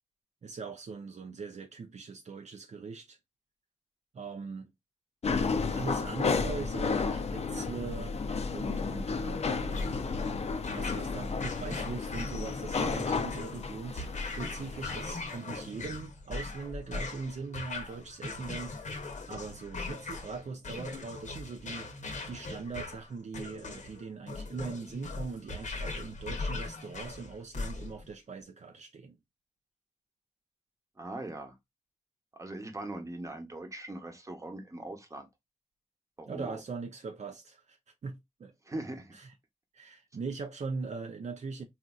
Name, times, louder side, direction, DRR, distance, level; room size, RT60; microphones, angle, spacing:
voice 1, 0.4-3.2 4.1-4.7 5.7-8.2 8.5-10.1 10.7-21.9 22.3-29.2 36.3-37.8 38.0-38.5 39.1-39.3 39.7-41.6, right 4 dB, 70° right, 0.5 m, -41 dB
sound 1, 5.2-15.1, left 4 dB, 60° left, 0.4 m, -32 dB
sound 2, 9.7-28.1, left 3 dB, 85° left, 0.8 m, -40 dB
voice 2, 31.0-31.6 32.3-35.3 36.2-36.6 38.6-39.1, right 2 dB, 25° right, 0.8 m, -40 dB
4.1 x 2.5 x 2.2 m
wide cardioid pair, 110°, 12 cm